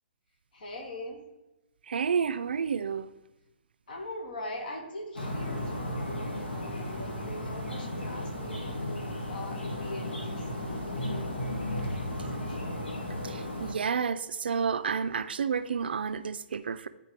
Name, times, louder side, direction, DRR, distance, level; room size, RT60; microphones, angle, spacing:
voice 1, 0.5-1.2 3.9-10.9 12.2-12.8, left 1 dB, 50° left, 1.6 m, -42 dB
voice 2, 1.9-3.1 13.2-16.9, right 6 dB, 60° right, 0.4 m, -30 dB
sound 1, 5.2-13.7, left 1 dB, 70° left, 1.8 m, -34 dB
10.5 x 4.1 x 3.4 m
figure-of-eight pair, 130°, 6 cm